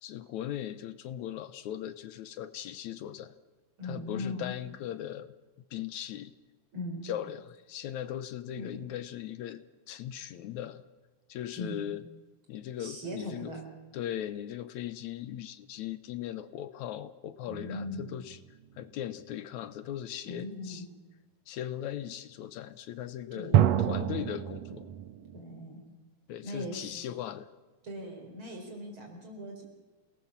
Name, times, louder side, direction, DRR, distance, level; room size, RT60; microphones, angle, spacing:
voice 1, 0.0-3.3 3.8-5.3 5.7-6.3 7.0-10.8 11.3-12.0 12.5-13.5 13.9-18.4 18.8-20.8 21.5-23.5 23.9-24.9 26.3-27.5, left 11 dB, 75° left, 13 dB, 2.1 m, -38 dB
voice 2, 3.8-4.5 6.7-7.0 8.5-8.8 11.5-11.9 12.8-13.6 17.5-18.1 20.3-20.9 23.3-23.7 25.3-25.8 26.4-27.1 27.8-29.6, left 1 dB, 40° right, 2 dB, 5.4 m, -39 dB
sound 1, 17.5-18.8 23.5-25.4, right 11 dB, 65° right, 2.0 m, -28 dB
27.5 x 19.0 x 7.3 m, 1.2 s
omnidirectional pair, 3.5 m